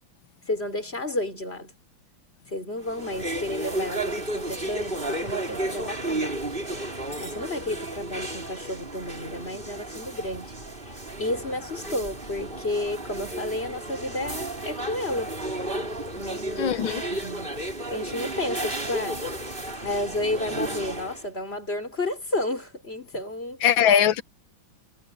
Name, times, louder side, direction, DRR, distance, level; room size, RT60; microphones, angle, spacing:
voice 1, 0.5-1.8 2.5-6.4 7.2-10.5 10.8-10.9 11.2-15.4 16.1-16.8 17.1-17.6 17.9-19.2 19.8-23.6, left 1 dB, 30° left, 4.7 m, -31 dB
sound 1, 2.8-21.3, right 1 dB, 25° right, 4.7 m, -33 dB
voice 2, 16.6-17.0 23.6-24.2, left 9 dB, 85° left, 1.8 m, -20 dB
omnidirectional pair, 2.1 m